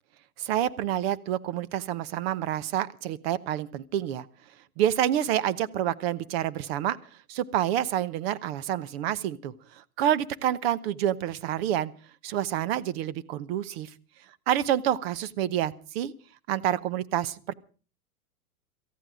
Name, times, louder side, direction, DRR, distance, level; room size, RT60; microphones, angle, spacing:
voice 1, 0.4-4.3 4.8-7.0 7.3-11.9 12.2-13.9 14.5-16.1 16.5-17.5, right 11 dB, 45° right, 17 dB, 1.0 m, -28 dB
18.0 x 14.5 x 5.0 m, 0.38 s
hypercardioid pair, 135°, 44 cm